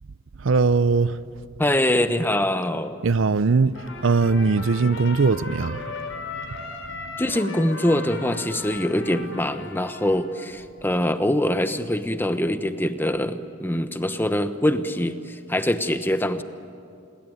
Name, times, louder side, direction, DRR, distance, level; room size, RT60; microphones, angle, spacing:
voice 1, 0.4-1.2 3.0-6.0 6.3-6.4, right 4 dB, 70° right, 0.6 m, -20 dB
voice 2, 1.6-3.0 7.2-16.4, left 1 dB, 10° left, 1.0 m, -24 dB
Trumpet, 3.7-10.5, left 3 dB, 90° left, 4.4 m, -37 dB
27.5 x 21.5 x 9.5 m
head